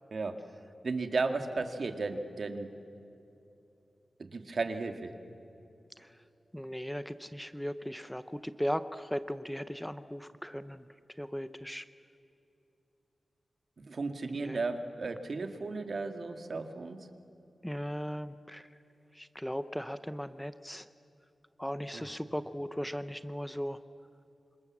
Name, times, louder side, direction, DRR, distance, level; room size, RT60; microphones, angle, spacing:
voice 1, 0.1-0.4 0.8-2.7 4.2-5.1 13.9-17.1 21.9-22.1, right 3 dB, 60° right, 7 dB, 2.0 m, -34 dB
voice 2, 6.5-10.8 11.2-11.8 14.3-14.6 17.6-18.6 19.2-20.8 21.6-23.8, equal, 5° left, 12 dB, 0.7 m, -37 dB
27.5 x 26.5 x 7.3 m, 2.8 s
wide cardioid pair, 100°, 0 cm